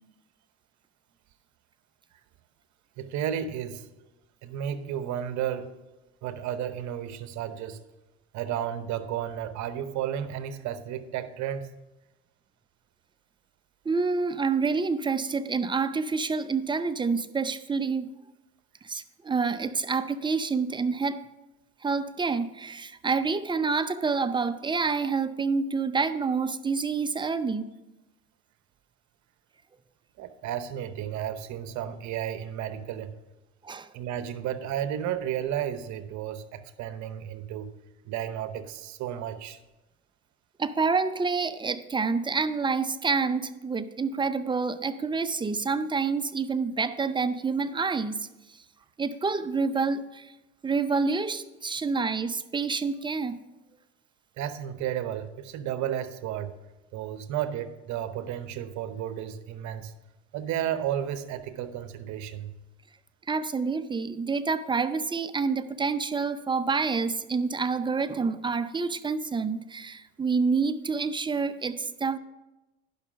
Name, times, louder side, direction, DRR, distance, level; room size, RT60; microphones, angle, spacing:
voice 1, 3.0-3.9 4.4-5.7 6.2-7.8 8.3-11.7 30.2-33.1 33.9-37.7 38.0-39.6 54.4-56.5 56.9-59.9 60.3-62.5, right 10 dB, 60° right, 12 dB, 0.9 m, -33 dB
voice 2, 13.9-18.1 18.8-21.2 21.8-27.7 33.6-33.9 40.6-48.2 48.5-48.6 49.0-50.3 50.6-53.4 63.3-72.2, right 4 dB, 15° right, 12 dB, 0.5 m, -28 dB
11.0 x 5.6 x 5.2 m, 1.0 s
supercardioid pair, 80°, 32 cm